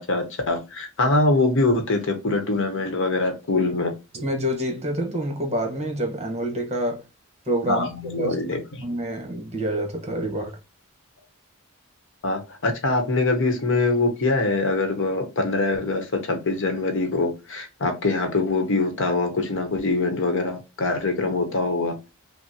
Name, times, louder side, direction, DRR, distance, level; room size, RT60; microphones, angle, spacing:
voice 1, 0.0-3.9 7.7-8.8 12.2-21.9, left 2 dB, 65° left, 0.9 m, -23 dB
voice 2, 4.1-7.0 7.5-7.9 8.1-8.4 8.8-10.5, right 1 dB, 30° right, 1.1 m, -27 dB
5.6 x 2.1 x 2.7 m
head